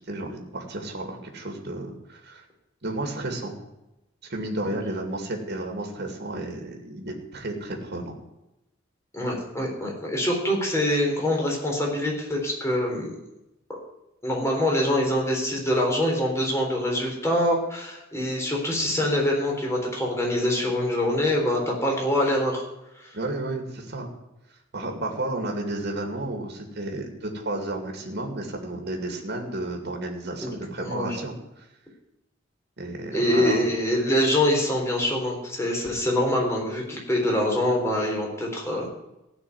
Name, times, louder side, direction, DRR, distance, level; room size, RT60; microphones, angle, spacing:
voice 1, 0.1-2.4 2.8-3.6 4.3-8.2 23.1-24.1 24.7-31.7 32.8-33.6, right 2 dB, 55° right, 2 dB, 2.4 m, -32 dB
voice 2, 9.1-13.1 14.2-22.6 23.0-23.1 30.4-30.5 30.8-31.2 33.1-38.9, left 1 dB, 15° left, -1 dB, 3.8 m, -24 dB
16.0 x 6.1 x 9.4 m, 0.92 s
head